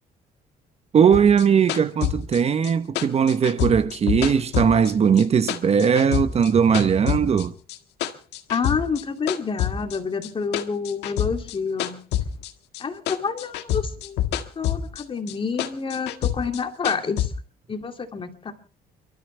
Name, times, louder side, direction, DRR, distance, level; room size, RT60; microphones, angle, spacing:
voice 1, 0.9-7.5, right 7 dB, 40° right, 1.0 m, -19 dB
sound 1, 1.1-5.2 5.5-7.4 7.7-9.0 9.3-12.8 13.1-15.0 15.3-17.3, left 11 dB, 85° left, 1.8 m, -27 dB
voice 2, 8.5-12.0 12.8-14.2 14.6-17.3 17.7-18.5, left 5 dB, 30° left, 2.5 m, -28 dB
29.0 x 13.5 x 3.3 m
cardioid pair, 110°, 17 cm